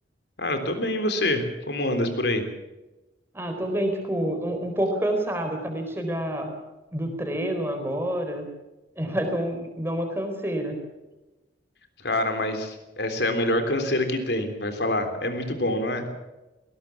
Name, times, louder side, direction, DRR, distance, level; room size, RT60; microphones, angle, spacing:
voice 1, 0.4-2.4 12.0-16.1, left 1 dB, 70° left, 7 dB, 3.5 m, -26 dB
voice 2, 3.3-6.5 6.9-8.4 9.0-10.8, right 1 dB, 15° right, 4 dB, 4.2 m, -28 dB
20.5 x 18.0 x 7.3 m, 1.1 s
head